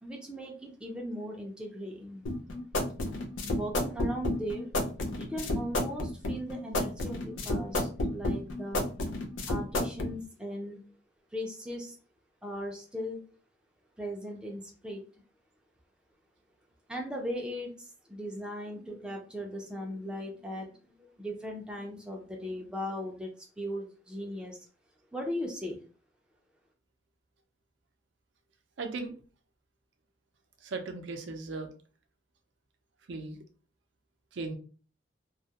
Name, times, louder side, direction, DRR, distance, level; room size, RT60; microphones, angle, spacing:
voice 1, 0.0-2.2 3.4-4.7 5.2-8.9 9.5-10.8 11.3-12.0 12.4-13.2 14.0-15.0 16.9-23.3 23.6-24.6 25.1-25.8, equal, 5° right, 0 dB, 0.4 m, -38 dB
sound 1, 2.2-10.1, left 1 dB, 85° left, 0.4 m, -31 dB
voice 2, 28.8-29.2 30.6-31.7 33.1-33.4 34.3-34.6, right 3 dB, 80° right, 5 dB, 0.5 m, -37 dB
2.3 x 2.0 x 2.7 m, 0.38 s
head